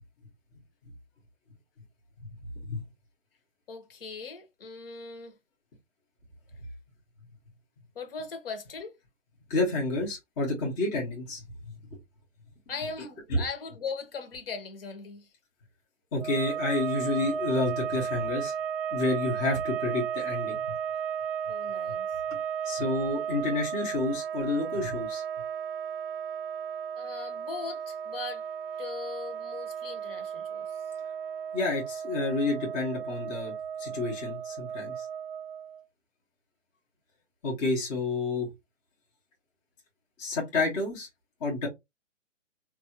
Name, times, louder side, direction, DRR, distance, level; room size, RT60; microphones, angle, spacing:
voice 1, 3.7-5.3 7.9-8.9 12.7-15.3 21.5-22.1 27.0-28.4 28.8-30.6, left 4 dB, 45° left, 1.0 m, -39 dB
voice 2, 9.5-11.7 13.3-13.4 16.1-18.5 18.9-20.8 22.6-25.2 31.5-35.1 37.4-38.5 40.2-41.1 41.4-41.7, left 2 dB, 15° left, 0.7 m, -29 dB
sound 1, 16.2-35.8, right 7 dB, 45° right, 0.5 m, -34 dB
4.0 x 2.4 x 2.8 m
hypercardioid pair, 145°, 38 cm